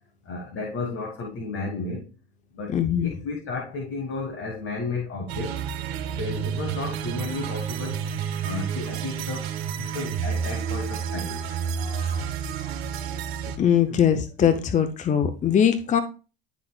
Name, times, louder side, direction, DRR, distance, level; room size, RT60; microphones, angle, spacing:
voice 1, 0.2-2.1 2.5-5.6 6.0-8.0 8.4-11.4, left 3 dB, 45° left, 1 dB, 1.6 m, -33 dB
voice 2, 2.7-3.1 11.8-12.3 13.6-16.0, left 8 dB, 25° left, 10 dB, 0.6 m, -22 dB
sound 1, 5.3-13.6, right 7 dB, 80° right, 1.4 m, -30 dB
11.5 x 3.8 x 2.3 m, 0.33 s
supercardioid pair, 95°, 30 cm